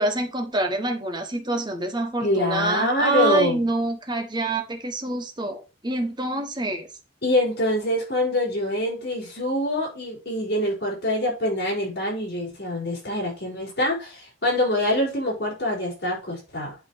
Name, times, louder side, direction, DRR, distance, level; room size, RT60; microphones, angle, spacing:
voice 1, 0.0-6.9, right 2 dB, 25° right, 1.3 m, -26 dB
voice 2, 2.2-3.6 7.2-16.7, left 1 dB, 55° left, 4.9 m, -25 dB
8.5 x 3.3 x 6.1 m
head